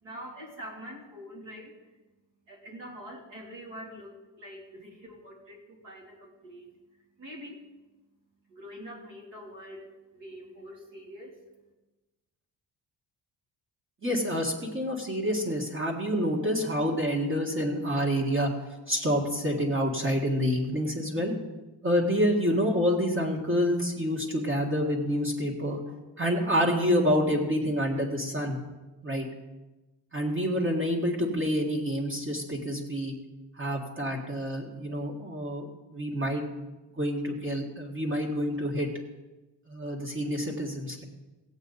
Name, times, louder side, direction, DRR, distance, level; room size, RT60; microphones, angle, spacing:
voice 1, 0.0-1.7 2.5-6.7 7.2-7.6 8.5-11.4, equal, 70° right, -2 dB, 3.3 m, -45 dB
voice 2, 14.0-18.5 18.9-21.3 21.8-25.8 26.2-28.6 29.0-29.2 30.1-33.1 33.6-36.4 36.9-38.9 39.7-41.0, equal, 25° right, -2 dB, 1.8 m, -28 dB
17.0 x 8.2 x 4.0 m, 1.1 s
cardioid pair, 145°, 45 cm